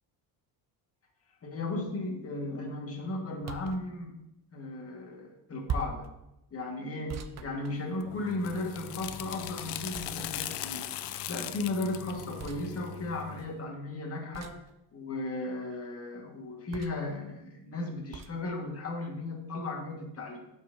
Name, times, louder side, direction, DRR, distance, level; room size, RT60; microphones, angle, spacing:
voice 1, 1.4-4.2 4.5-6.1 6.5-10.9 11.3-14.6 14.9-20.4, left 2 dB, 35° left, 0 dB, 1.8 m, -35 dB
sound 1, 3.4-3.8 5.7-6.1 7.1-8.3 9.9-10.5 12.4-12.6 14.3-14.7 16.7-17.1 18.1-18.4, right 6 dB, 40° right, 0.6 m, -39 dB
sound 2, 8.0-13.5, left 11 dB, 70° left, 0.6 m, -39 dB
12.0 x 5.7 x 2.8 m, 0.88 s
cardioid pair, 130°, 42 cm